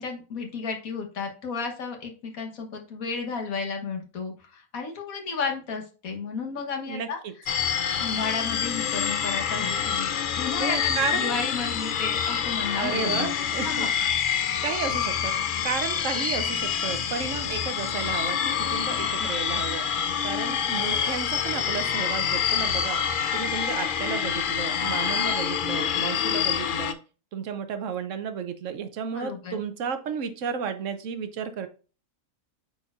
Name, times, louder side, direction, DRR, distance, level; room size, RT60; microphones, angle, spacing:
voice 1, 0.0-7.2 8.0-13.3 13.6-13.9 18.9-19.1 29.1-29.6, left 5 dB, 70° left, 3 dB, 1.7 m, -33 dB
voice 2, 6.9-7.3 10.6-11.3 12.7-13.9 14.6-15.4 15.6-19.9 20.2-23.0 23.3-27.0 27.3-31.7, right 6 dB, 65° right, 9 dB, 1.1 m, -32 dB
sound 1, 7.5-26.9, left 8 dB, 90° left, 0.4 m, -27 dB
9.0 x 4.2 x 2.4 m, 0.34 s
omnidirectional pair, 1.5 m